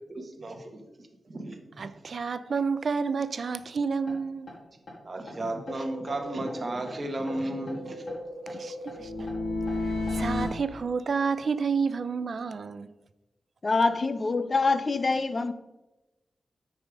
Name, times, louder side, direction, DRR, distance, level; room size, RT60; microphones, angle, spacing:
voice 1, 0.1-0.7 1.3-1.9 5.0-8.0 8.6-8.7, right 1 dB, 35° right, 1.3 m, -34 dB
voice 2, 1.8-4.5 8.5-9.3 9.7-12.9, right 5 dB, 60° right, 0.5 m, -30 dB
sound 1, 4.1-4.2 4.5-4.6 4.9-5.0 5.3-5.4 5.7-7.0 7.3-10.5, left 2 dB, 65° left, 2.2 m, -33 dB
voice 3, 13.6-15.5, left 3 dB, 35° left, 0.6 m, -25 dB
9.1 x 4.9 x 5.1 m
wide cardioid pair, 140°, 0 cm